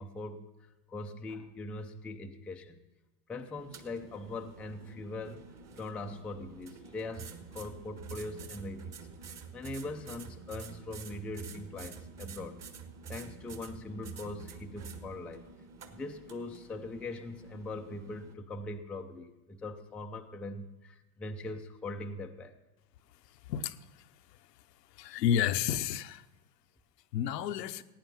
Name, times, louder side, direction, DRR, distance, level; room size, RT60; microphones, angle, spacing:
voice 1, 0.0-2.8 3.3-5.5 5.8-9.0 9.2-12.6 13.1-15.5 15.9-22.6, left 2 dB, 5° left, 0.4 m, -41 dB
sound 1, 3.6-18.4, right 5 dB, 30° right, 1.4 m, -48 dB
voice 2, 25.0-26.2 27.1-27.8, left 10 dB, 75° left, 0.8 m, -30 dB
16.5 x 9.1 x 5.8 m
hypercardioid pair, 95°, 49 cm